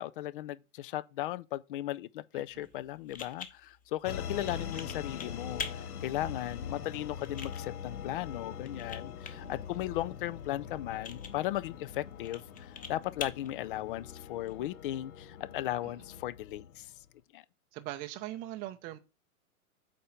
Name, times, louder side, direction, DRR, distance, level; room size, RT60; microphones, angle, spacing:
voice 1, 0.0-16.9 17.3-17.4, left 14 dB, 40° left, 0.5 m, -37 dB
sound 1, 2.5-14.5, left 6 dB, 20° left, 1.2 m, -47 dB
sound 2, 4.0-17.1, left 7 dB, 90° left, 0.9 m, -43 dB
sound 3, 4.2-16.2, left 7 dB, 55° left, 1.9 m, -55 dB
voice 2, 4.3-4.7 9.3-9.6 17.7-19.0, right 15 dB, 20° right, 0.5 m, -42 dB
8.5 x 3.7 x 5.7 m
hypercardioid pair, 120°, 44 cm